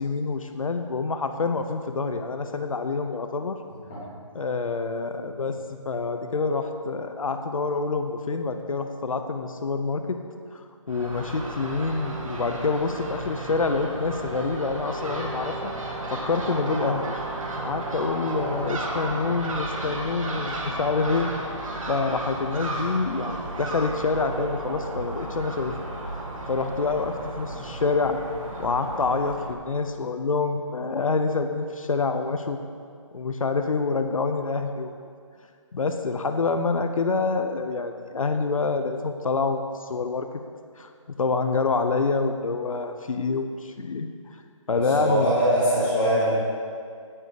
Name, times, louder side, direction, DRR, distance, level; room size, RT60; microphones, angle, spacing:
voice 1, 0.0-3.6 4.3-5.6 5.8-10.2 10.5-15.7 16.1-17.0 17.6-21.3 21.9-25.7 26.5-28.2 28.6-32.6 33.1-34.9 35.7-40.3 40.8-44.1 44.7-45.3, left 4 dB, 85° left, 7 dB, 0.9 m, -27 dB
Crow / Gull seagull, 10.9-29.5, right 2 dB, 90° right, 2.5 m, -33 dB
voice 2, 44.7-46.3, right 1 dB, 20° left, -11 dB, 3.4 m, -22 dB
17.5 x 6.8 x 5.1 m, 2.2 s
hypercardioid pair, 180°, 17 cm